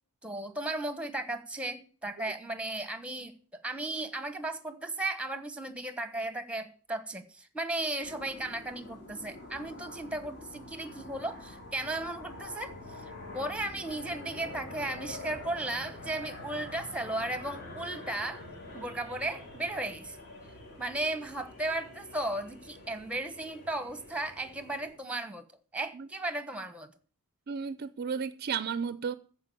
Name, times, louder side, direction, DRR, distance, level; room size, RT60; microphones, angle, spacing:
voice 1, 0.2-18.5 18.7-20.2 20.8-25.4 25.7-26.9, right 2 dB, 5° right, 1.1 m, -35 dB
sound 1, 8.0-24.9, left 2 dB, 50° left, 3.9 m, -46 dB
voice 2, 27.5-29.1, right 6 dB, 45° right, 0.4 m, -33 dB
14.0 x 4.9 x 8.4 m
head